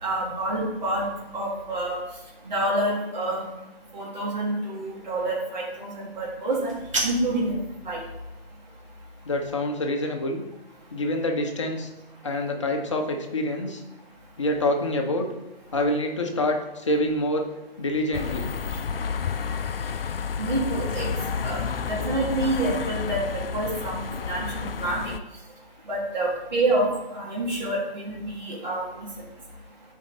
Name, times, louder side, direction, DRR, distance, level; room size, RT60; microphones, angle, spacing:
voice 1, 0.0-2.0 2.4-3.4 3.9-6.7 7.0-7.5 7.8-8.0 20.4-21.1 21.4-21.6 21.9-25.1 25.9-29.1, right 1 dB, 45° right, -5 dB, 2.3 m, -27 dB
sound 1, 6.5-7.5, right 2 dB, 30° right, 1.3 m, -30 dB
voice 2, 9.2-10.4 10.9-11.9 12.2-13.8 14.4-15.3 15.7-17.5 17.8-18.5, left 1 dB, 30° left, 3 dB, 0.8 m, -26 dB
sound 2, 18.1-25.2, left 6 dB, 65° left, 0.5 m, -30 dB
8.2 x 4.5 x 3.9 m, 0.96 s
figure-of-eight pair, 150°, 31 cm